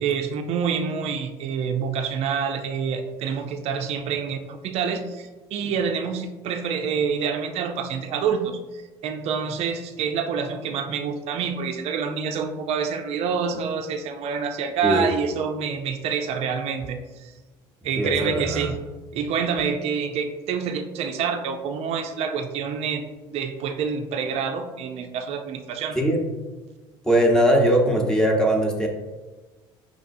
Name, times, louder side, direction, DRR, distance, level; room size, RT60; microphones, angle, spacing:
voice 1, 0.0-17.3 17.8-18.8 19.1-26.0, right 6 dB, 55° right, 6 dB, 0.5 m, -27 dB
voice 2, 18.0-18.7 25.9-26.3 27.0-28.9, equal, 5° left, 0 dB, 0.9 m, -20 dB
5.3 x 3.1 x 2.6 m, 1.2 s
supercardioid pair, 85°, 12 cm